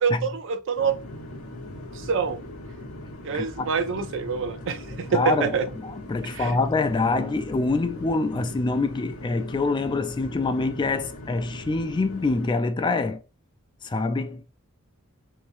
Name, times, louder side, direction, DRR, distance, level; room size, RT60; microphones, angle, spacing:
voice 1, 0.0-1.0 1.9-2.4 3.2-5.7 6.3-6.6, right 5 dB, 60° right, 0.5 m, -26 dB
sound 1, 0.8-12.5, left 1 dB, 85° left, 0.8 m, -40 dB
voice 2, 3.3-3.7 5.1-13.2 13.8-14.4, left 3 dB, 20° left, 0.3 m, -25 dB
3.3 x 2.9 x 2.5 m
head